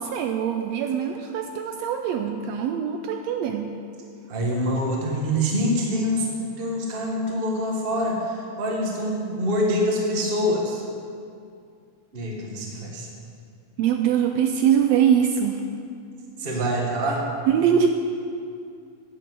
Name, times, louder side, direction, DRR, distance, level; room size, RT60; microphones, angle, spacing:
voice 1, 0.0-3.7 13.8-15.6 17.5-17.9, right 8 dB, 80° right, 5 dB, 1.7 m, -22 dB
voice 2, 4.3-6.3 6.6-10.8 12.1-13.1 16.4-17.2, equal, 25° right, -1 dB, 1.3 m, -25 dB
10.5 x 7.7 x 7.7 m, 2.3 s
omnidirectional pair, 3.3 m